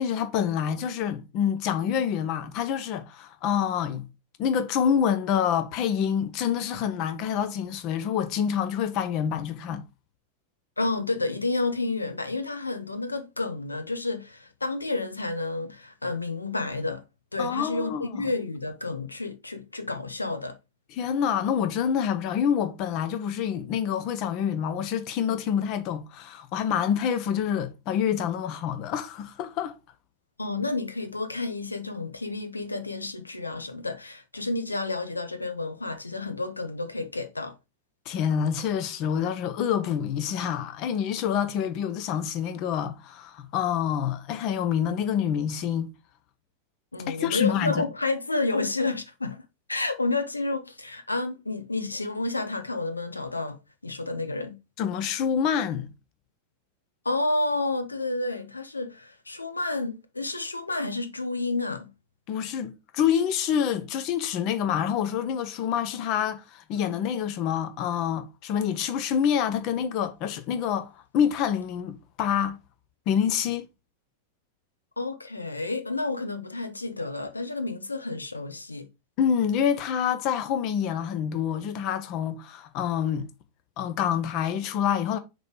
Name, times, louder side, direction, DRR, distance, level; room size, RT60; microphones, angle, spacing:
voice 1, 0.0-4.1 4.4-9.8 17.4-18.2 20.9-29.8 38.1-45.9 47.1-47.8 54.8-55.9 62.3-72.6 73.1-73.7 79.2-83.3 83.8-85.2, left 8 dB, 40° left, 0.9 m, -27 dB
voice 2, 10.8-17.0 17.3-20.6 30.4-37.5 46.9-49.4 49.7-53.6 53.8-54.6 57.0-61.9 75.0-78.9, left 2 dB, 80° left, 0.7 m, -30 dB
6.3 x 3.3 x 4.6 m
figure-of-eight pair, 90°, 0 cm